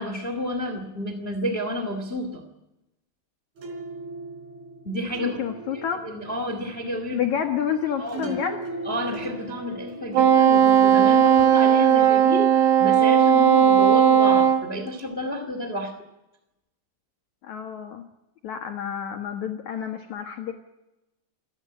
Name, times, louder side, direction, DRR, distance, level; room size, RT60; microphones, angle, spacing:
voice 1, 0.0-2.5 4.8-5.4 5.7-7.3 8.0-8.4 8.8-15.9, equal, 65° left, 7 dB, 0.6 m, -30 dB
sound 1, 3.6-12.7, right 2 dB, 55° right, 5.3 m, -39 dB
voice 2, 5.2-6.0 7.1-8.6 17.4-18.1 18.4-20.5, left 8 dB, 85° left, 4 dB, 1.6 m, -29 dB
Wind instrument woodwind instrument, 10.1-14.6, right 9 dB, 80° right, 4.0 m, -17 dB
28.0 x 10.5 x 9.8 m, 0.96 s
omnidirectional pair, 5.5 m